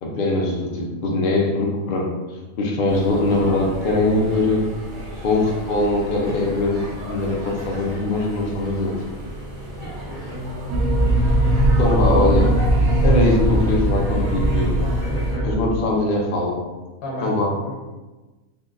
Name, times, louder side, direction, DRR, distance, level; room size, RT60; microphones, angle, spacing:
voice 1, 0.0-2.1 2.6-4.8 5.2-9.0 11.8-12.6 13.0-14.8 15.4-16.6 17.2-17.5, left 2 dB, 50° left, -1 dB, 0.7 m, -21 dB
sound 1, 2.9-15.4, right 1 dB, 35° right, 1.4 m, -34 dB
voice 2, 9.8-10.6 14.8-15.5 17.0-17.3 17.6-17.7, left 1 dB, 90° left, -4 dB, 1.5 m, -33 dB
sound 2, 10.7-15.8, right 1 dB, 90° right, 1.1 m, -19 dB
4.1 x 2.9 x 2.5 m, 1.2 s
omnidirectional pair, 1.4 m